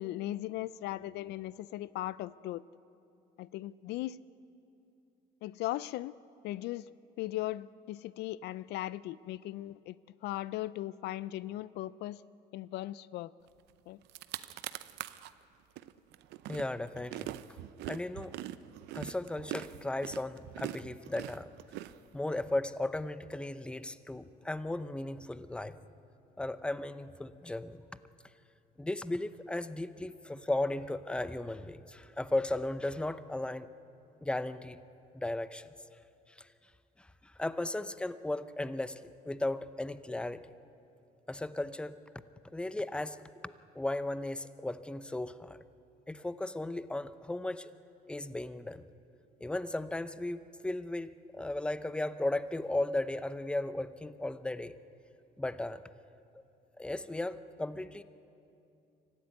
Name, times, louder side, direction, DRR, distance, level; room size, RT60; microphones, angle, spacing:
voice 1, 0.0-2.6 3.4-4.2 5.4-6.2 6.4-6.9 7.2-10.0 10.2-12.2 12.5-13.3 13.9-14.0, left 15 dB, 80° left, 18 dB, 0.5 m, -38 dB
sound 1, 13.7-13.8 14.0-15.3 15.8-22.5, right 14 dB, 85° right, 0.7 m, -43 dB
voice 2, 16.5-17.3 17.9-18.4 18.9-21.5 22.1-25.8 26.4-27.8 28.8-33.7 34.2-34.8 35.1-35.7 36.3-36.5 37.0-40.5 41.3-42.0 42.4-45.6 46.1-47.7 48.1-48.9 49.4-54.8 55.4-55.8 56.8-58.0, left 2 dB, 5° left, 13 dB, 0.7 m, -36 dB
24.5 x 15.0 x 9.5 m, 2.7 s
cardioid pair, 110°, 17 cm